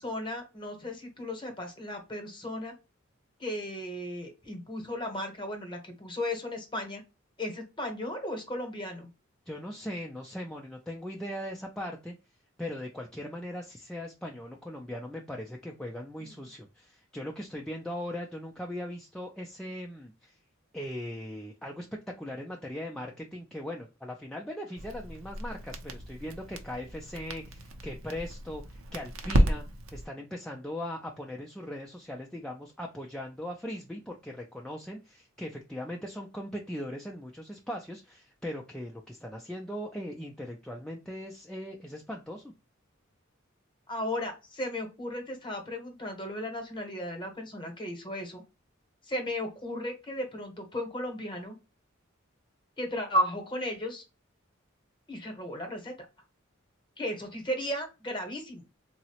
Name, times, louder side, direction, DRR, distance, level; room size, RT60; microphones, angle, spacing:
voice 1, 0.0-2.7 3.4-7.0 7.4-9.1 16.2-16.4 43.9-48.4 49.0-51.6 52.8-54.0 55.1-55.9 57.0-58.6, left 1 dB, 25° left, 4 dB, 0.9 m, -35 dB
voice 2, 9.5-12.1 12.6-20.4 20.7-21.9 22.2-29.6 29.9-42.5, left 1 dB, 5° left, 0 dB, 0.3 m, -39 dB
Crackle, 24.8-30.1, right 1 dB, 75° right, 0.6 m, -32 dB
3.7 x 2.0 x 2.8 m, 0.28 s
head